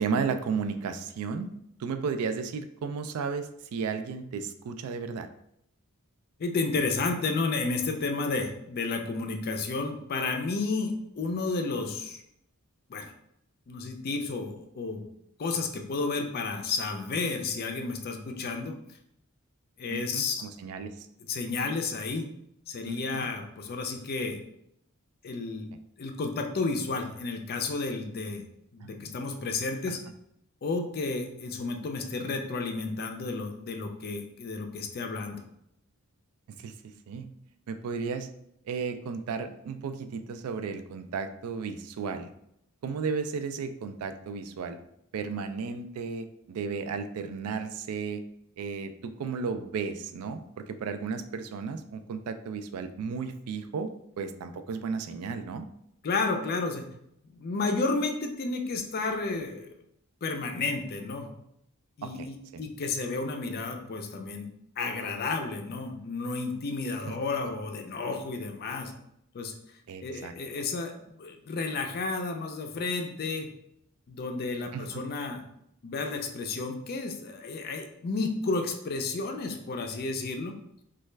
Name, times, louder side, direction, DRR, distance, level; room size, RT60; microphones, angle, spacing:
voice 1, 0.0-1.5 1.8-5.3 19.9-21.1 22.9-23.3 28.8-29.4 29.9-30.0 36.6-36.7 37.1-37.3 37.7-38.3 38.6-42.3 42.8-44.8 45.1-48.2 48.6-53.9 54.2-55.7 62.0-62.6 69.9-70.3 74.7-75.0, right 5 dB, 75° right, 9 dB, 0.3 m, -34 dB
voice 2, 6.4-12.2 12.9-13.1 13.7-15.0 15.4-18.8 19.8-20.4 21.3-22.3 22.7-24.4 25.2-25.7 26.0-28.4 28.7-30.0 30.6-35.4 56.0-56.8 57.3-59.7 60.2-61.3 62.0-64.5 64.8-68.9 69.3-69.5 70.0-73.5 74.1-75.4 75.8-80.6, left 3 dB, 45° left, 4 dB, 0.4 m, -32 dB
3.2 x 2.3 x 3.2 m, 0.76 s
head